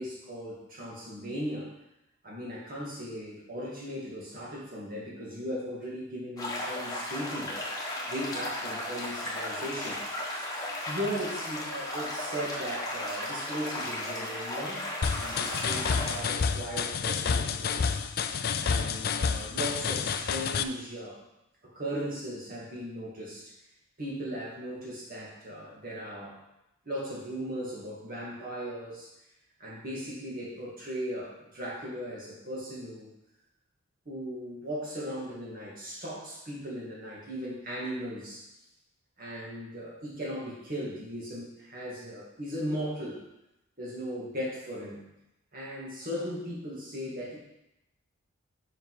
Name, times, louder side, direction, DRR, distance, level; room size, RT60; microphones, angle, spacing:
voice 1, 0.0-1.7 2.2-7.5 8.1-10.0 10.9-14.8 15.1-18.0 18.6-21.2 21.6-23.5 24.0-26.4 26.9-29.1 29.6-33.1 34.1-38.5 39.2-43.2 43.8-45.0 45.5-47.4, equal, 40° right, -5 dB, 2.0 m, -37 dB
sound 1, 6.4-16.2, left 1 dB, 15° left, 1.4 m, -35 dB
sound 2, 15.0-20.6, left 6 dB, 45° left, 0.4 m, -29 dB
7.2 x 5.7 x 4.8 m, 0.91 s
head